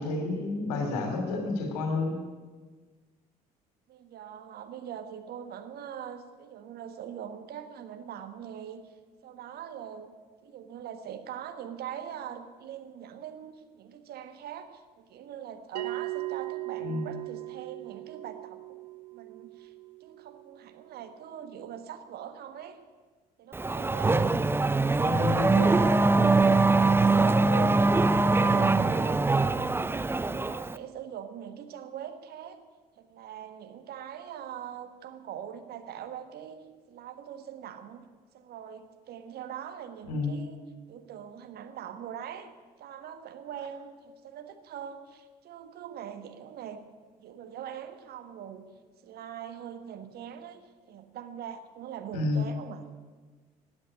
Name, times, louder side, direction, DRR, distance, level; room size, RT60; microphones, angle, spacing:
voice 1, 0.0-2.2 16.8-17.1 25.1-25.8 40.0-40.4 52.1-52.5, left 3 dB, 70° left, 5 dB, 2.9 m, -30 dB
voice 2, 3.9-8.8 9.2-10.2 10.4-18.8 19.1-19.7 20.0-22.8 23.4-24.3 24.8-30.0 30.3-32.6 33.0-38.1 38.3-40.6 40.9-42.5 42.8-46.8 47.2-48.6 49.0-52.8, right 9 dB, 50° right, 8 dB, 1.5 m, -42 dB
Bell, 15.8-20.8, right 19 dB, 75° right, 0.6 m, -38 dB
Race car auto racing / Accelerating revving vroom, 23.5-30.8, right 3 dB, 10° right, 0.6 m, -23 dB
16.0 x 8.8 x 9.8 m, 1.4 s
figure-of-eight pair, 50°, 20 cm